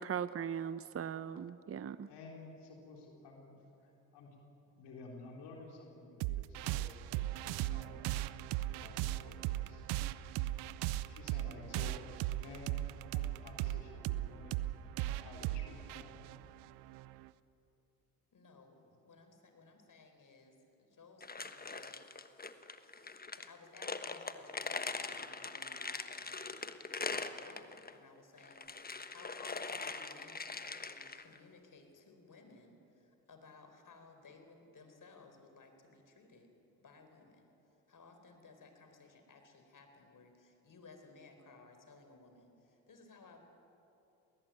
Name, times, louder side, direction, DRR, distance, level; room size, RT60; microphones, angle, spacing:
voice 1, 0.0-2.1, right 8 dB, 35° right, 14 dB, 0.7 m, -39 dB
voice 2, 2.1-4.3 4.7-6.9 7.2-8.0 8.6-9.4 9.6-9.8 10.7-12.0 12.3-14.7 15.1-16.2, left 3 dB, 75° left, 0 dB, 3.8 m, -53 dB
sound 1, 6.2-17.3, right 15 dB, 80° right, 0.7 m, -38 dB
voice 3, 18.3-22.5 23.0-36.5 36.8-37.5 37.9-43.4, left 3 dB, 50° left, 6 dB, 4.4 m, -59 dB
sound 2, 21.2-27.9 28.4-31.4, left 4 dB, 20° left, 1.3 m, -42 dB
20.5 x 18.5 x 9.0 m, 2.9 s
hypercardioid pair, 50°, 41 cm